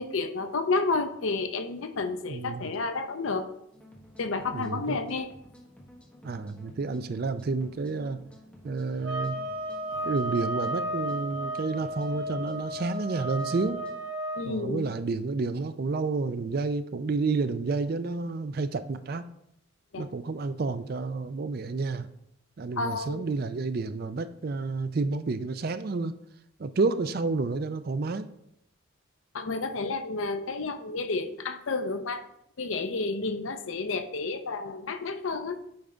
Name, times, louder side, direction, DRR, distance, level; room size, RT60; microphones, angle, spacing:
voice 1, 0.0-3.5 4.2-5.3 14.4-14.9 19.9-20.1 22.8-23.2 29.3-32.2 32.6-35.6, left 3 dB, 75° left, 9 dB, 0.6 m, -31 dB
voice 2, 2.3-2.7 4.5-5.0 6.2-8.2 8.6-9.4 10.1-13.8 14.5-19.3 20.0-22.1 22.6-26.1 26.6-28.3, right 3 dB, 45° right, 11 dB, 0.4 m, -30 dB
sound 1, 3.7-14.0, left 1 dB, 5° left, 1.1 m, -52 dB
sound 2, 9.0-14.5, right 1 dB, 70° right, 1.9 m, -33 dB
8.7 x 3.7 x 4.4 m, 0.76 s
head